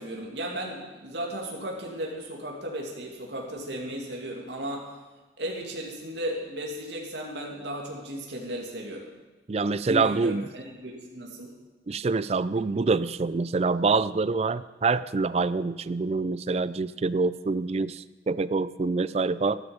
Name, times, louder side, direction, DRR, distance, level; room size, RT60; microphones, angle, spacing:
voice 1, 0.0-4.9 5.4-9.1 9.9-11.6, right 1 dB, 70° right, -1 dB, 2.4 m, -35 dB
voice 2, 9.5-10.5 11.9-19.6, right 4 dB, 35° right, 16 dB, 0.4 m, -26 dB
13.0 x 12.5 x 5.1 m, 1.2 s
head